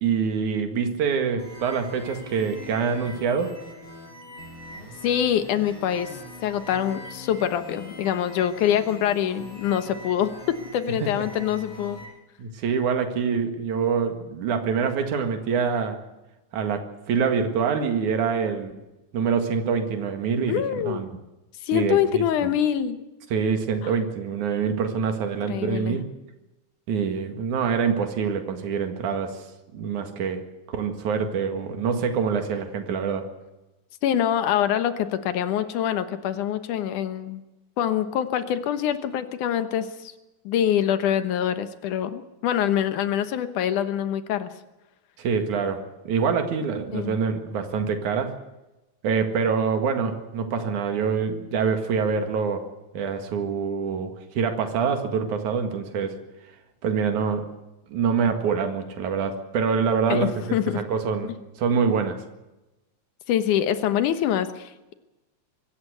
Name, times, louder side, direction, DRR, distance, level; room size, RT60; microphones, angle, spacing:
voice 1, 0.0-3.5 11.0-11.1 12.4-16.0 16.5-18.7 19.1-21.2 21.7-22.2 23.3-26.1 26.9-29.4 29.7-30.4 30.7-33.3 45.2-48.3 49.0-52.7 52.9-56.1 56.8-57.5 57.9-60.4 60.7-61.3 61.6-62.2, right 6 dB, 75° right, 6 dB, 3.3 m, -25 dB
sound 1, 1.4-12.1, left 1 dB, 40° left, 7.2 m, -42 dB
voice 2, 5.0-12.0 20.5-21.1 21.6-23.0 23.8-23.9 25.5-26.0 34.0-37.4 37.8-40.1 40.5-44.5 46.9-47.2 60.1-60.8 61.3-61.4 63.3-64.9, left 10 dB, 85° left, 10 dB, 2.7 m, -25 dB
25.0 x 14.0 x 8.1 m, 1.0 s
omnidirectional pair, 3.5 m